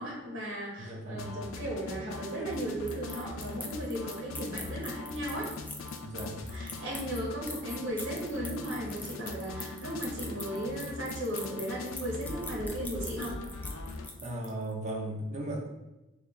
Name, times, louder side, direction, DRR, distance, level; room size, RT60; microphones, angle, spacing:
voice 1, 0.0-5.6 6.5-13.4, right 1 dB, 65° right, -3 dB, 1.0 m, -36 dB
voice 2, 0.8-1.4 6.0-6.4 14.2-15.7, right 1 dB, 40° right, -1 dB, 0.8 m, -36 dB
sound 1, 1.2-14.1, left 3 dB, 80° left, 0.4 m, -41 dB
sound 2, 2.1-14.7, left 2 dB, 10° left, 0.3 m, -44 dB
3.2 x 2.7 x 3.6 m, 1.0 s
head